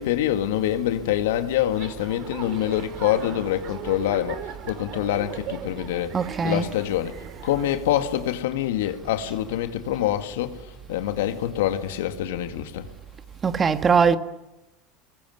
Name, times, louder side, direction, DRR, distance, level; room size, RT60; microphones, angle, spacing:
voice 1, 0.0-6.2 6.4-7.2 7.4-10.6 10.9-12.9, left 12 dB, 80° left, 2.0 m, -25 dB
sound 1, 1.7-7.8, right 8 dB, 55° right, 3.4 m, -38 dB
voice 2, 6.1-6.6 13.4-14.2, right 5 dB, 30° right, 1.7 m, -20 dB
23.5 x 21.5 x 9.5 m
hypercardioid pair, 90°, 0 cm